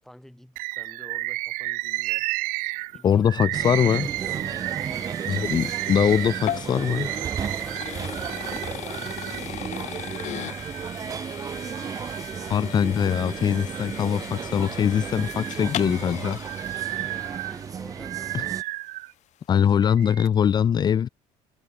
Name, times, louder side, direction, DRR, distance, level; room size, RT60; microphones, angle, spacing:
voice 1, 0.0-2.3 2.9-3.3 3.8-5.6 7.4-11.3 16.9-18.6, equal, ahead, 7.3 m, -49 dB
Bird, 0.6-9.5 10.0-11.0 11.5-12.5 13.0-14.3 14.8-19.1 19.8-20.3, right 21 dB, 75° right, 0.6 m, -33 dB
sound 1, 3.0-18.2, left 14 dB, 55° left, 1.3 m, -39 dB
voice 2, 3.0-4.1 5.3-7.1 12.5-16.4 18.3-18.4 19.5-21.1, left 8 dB, 30° left, 0.6 m, -22 dB
sound 2, 3.5-18.6, right 7 dB, 25° right, 0.4 m, -34 dB
cardioid pair, 135°, 14 cm